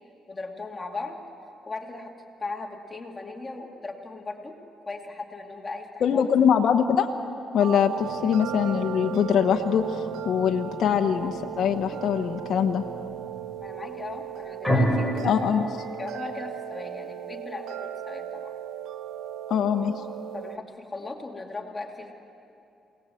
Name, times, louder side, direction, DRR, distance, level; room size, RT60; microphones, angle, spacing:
voice 1, 0.3-1.2 1.7-2.1 2.4-4.6 4.9-6.3 13.6-15.6 16.0-18.5 20.3-22.1, left 3 dB, 20° left, 2 dB, 2.5 m, -37 dB
voice 2, 6.0-7.1 7.5-12.8 15.2-15.7 19.5-19.9, left 8 dB, 65° left, 3 dB, 1.1 m, -23 dB
sound 1, 7.6-20.6, right 11 dB, 80° right, 0.8 m, -37 dB
sound 2, 8.0-14.8, left 1 dB, 5° right, 6.8 m, -36 dB
28.0 x 19.0 x 7.8 m, 2.8 s
cardioid pair, 90°, 0 cm